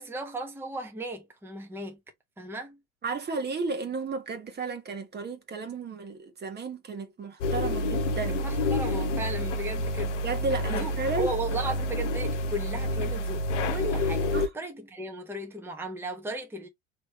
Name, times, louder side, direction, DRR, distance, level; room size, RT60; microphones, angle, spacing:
voice 1, 0.0-2.0 2.4-2.8 8.3-10.2 10.7-16.7, right 1 dB, 5° right, 1.2 m, -36 dB
voice 2, 3.0-8.4 10.2-11.3 14.3-14.5, right 4 dB, 25° right, 1.2 m, -33 dB
sound 1, 7.4-14.5, left 1 dB, 75° left, 0.9 m, -28 dB
4.3 x 3.1 x 3.0 m
hypercardioid pair, 75°, 37 cm